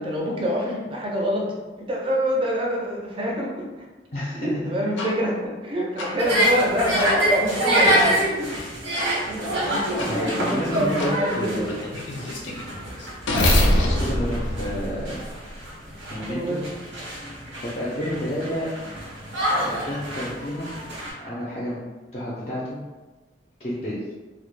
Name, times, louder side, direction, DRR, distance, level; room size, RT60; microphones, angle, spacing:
voice 1, 0.0-3.6 4.3-8.2 9.1-11.7 16.3-16.6, equal, 30° right, -2 dB, 0.4 m, -26 dB
voice 2, 4.1-4.7 9.9-11.7 13.5-15.2 16.1-16.6 17.6-18.7 19.5-20.7 21.2-21.8 22.1-22.8 23.6-24.0, equal, 35° left, -7 dB, 0.4 m, -30 dB
sound 1, 5.0-5.1 6.0-6.1 7.0-7.1 8.0-8.1 9.0-9.1 10.0-10.1 11.0-11.1 11.7-15.5, left 1 dB, 90° left, 0.5 m, -24 dB
sound 2, 6.2-21.1, right 1 dB, 85° right, 1.0 m, -26 dB
2.1 x 2.0 x 3.1 m, 1.2 s
head